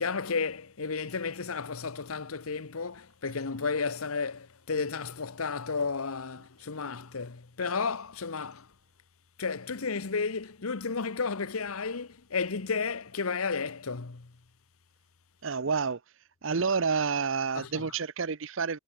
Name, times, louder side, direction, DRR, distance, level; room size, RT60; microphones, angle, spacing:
voice 1, 0.0-8.7 9.4-14.3 17.5-17.8, left 4 dB, 85° left, 1.0 m, -33 dB
voice 2, 15.4-16.0 16.4-18.8, right 5 dB, 65° right, 0.7 m, -29 dB
head